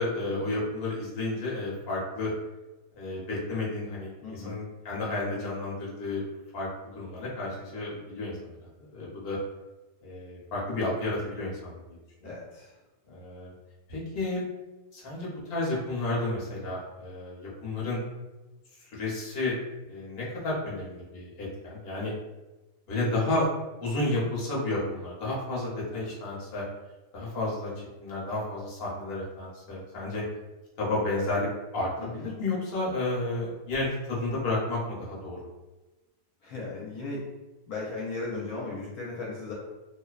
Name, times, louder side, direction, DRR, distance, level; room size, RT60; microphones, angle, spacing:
voice 1, 0.0-2.3 3.0-6.2 6.5-6.7 6.9-8.4 8.9-9.4 10.0-11.7 12.2-12.3 13.1-13.5 13.9-14.4 14.9-18.0 18.9-19.5 19.9-22.1 22.9-23.5 23.8-26.6 27.1-27.7 28.0-30.2 30.8-31.5 31.7-35.4, left 2 dB, 50° left, -5 dB, 0.8 m, -31 dB
voice 2, 4.2-4.6 12.2-12.7 32.0-32.3 36.4-37.3 37.7-39.5, left 3 dB, 75° left, -4 dB, 1.1 m, -36 dB
2.8 x 2.1 x 2.3 m, 1.1 s
omnidirectional pair, 1.7 m